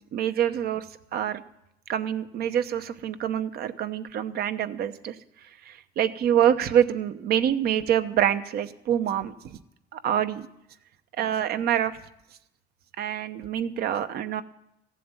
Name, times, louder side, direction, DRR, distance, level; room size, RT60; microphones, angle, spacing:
voice 1, 0.1-0.8 1.1-1.4 1.9-5.2 5.6-9.6 9.9-10.5 11.2-12.0 13.0-14.4, right 10 dB, 70° right, 10 dB, 0.9 m, -26 dB
15.5 x 7.6 x 9.7 m, 0.83 s
cardioid pair, 110°, 17 cm